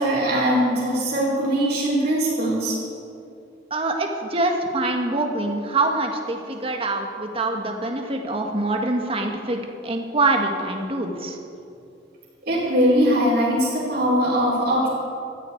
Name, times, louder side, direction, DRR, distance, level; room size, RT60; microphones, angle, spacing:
voice 1, 0.0-2.7 12.5-14.9, equal, 55° right, -11 dB, 4.9 m, -21 dB
voice 2, 3.7-11.4, right 2 dB, 30° right, 3 dB, 1.7 m, -25 dB
19.5 x 14.5 x 4.7 m, 2.6 s
head